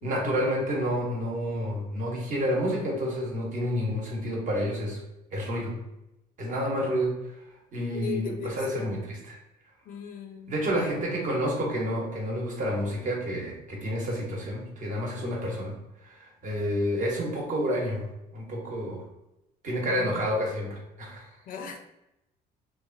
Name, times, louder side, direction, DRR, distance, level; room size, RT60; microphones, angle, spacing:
voice 1, 0.0-5.0 5.3-5.7 6.4-7.1 7.7-9.4 10.5-15.7 16.0-18.0 18.3-19.0 19.6-21.2, equal, 50° right, -2 dB, 1.0 m, -29 dB
voice 2, 7.9-8.9 9.9-10.9 19.8-20.3 21.5-21.8, left 8 dB, 55° left, 5 dB, 0.4 m, -38 dB
3.1 x 2.2 x 2.5 m, 0.88 s
cardioid pair, 110°, 17 cm